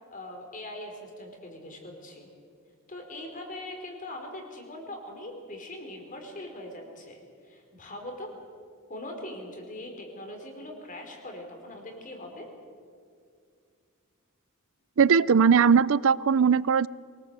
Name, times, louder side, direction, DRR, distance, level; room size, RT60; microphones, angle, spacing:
voice 1, 0.1-2.3 2.9-8.3 8.9-12.5, left 1 dB, 35° left, 3 dB, 4.4 m, -41 dB
voice 2, 15.0-16.9, right 6 dB, 60° right, 21 dB, 0.5 m, -20 dB
24.0 x 19.0 x 8.1 m, 2.2 s
head